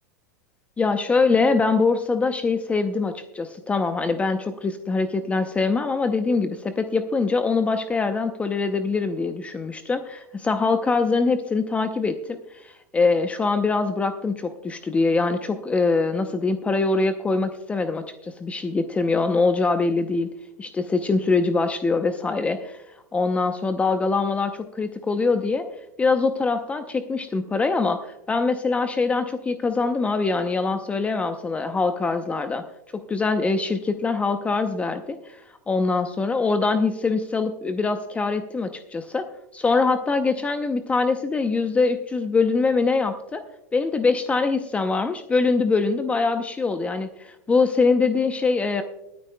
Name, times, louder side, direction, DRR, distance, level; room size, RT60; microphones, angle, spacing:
voice 1, 0.8-20.3 20.6-22.8 23.1-25.6 26.0-32.6 32.9-35.4 35.7-39.3 39.5-43.4 43.7-48.8, left 4 dB, 15° left, 9 dB, 0.6 m, -23 dB
27.5 x 9.3 x 2.2 m, 0.87 s
supercardioid pair, 125°, 9 cm